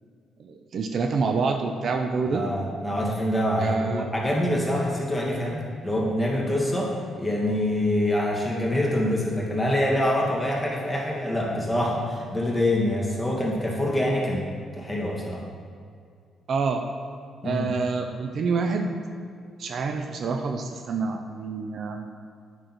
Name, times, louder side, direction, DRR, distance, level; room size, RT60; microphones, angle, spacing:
voice 1, 0.4-2.4 3.6-4.1 16.5-16.8 17.4-18.9 19.6-22.1, right 4 dB, 60° right, 5 dB, 0.6 m, -27 dB
voice 2, 2.3-14.5 14.8-15.4 17.4-17.7, left 1 dB, 10° left, -3 dB, 2.1 m, -25 dB
9.1 x 6.4 x 4.4 m, 2.2 s
cardioid pair, 90°, 0 cm